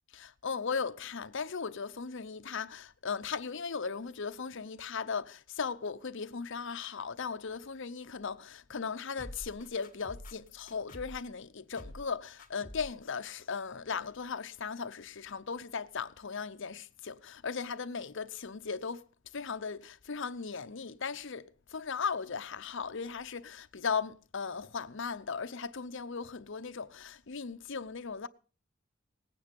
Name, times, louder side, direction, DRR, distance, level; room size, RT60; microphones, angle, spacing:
voice 1, 0.1-19.0 19.3-28.3, left 5 dB, 60° left, 0.7 m, -37 dB
sound 1, 9.2-11.3 11.7-12.1 12.4-13.0 13.2-13.3, left 1 dB, 40° left, 2.4 m, -47 dB
18.5 x 9.3 x 5.3 m
head